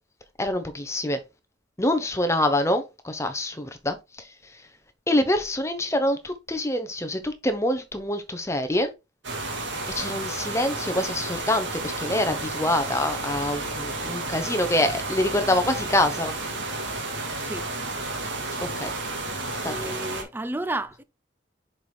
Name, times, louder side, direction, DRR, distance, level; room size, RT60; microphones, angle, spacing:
voice 1, 0.4-1.2 1.8-4.0 5.1-8.9 9.9-16.3 18.6-18.9 19.6-19.7, left 1 dB, 15° left, 0.9 m, -25 dB
sound 1, 9.2-20.2, right 2 dB, 80° right, 2.0 m, -31 dB
voice 2, 17.4-17.7 19.6-21.0, right 2 dB, 10° right, 0.5 m, -32 dB
6.5 x 4.8 x 3.5 m
head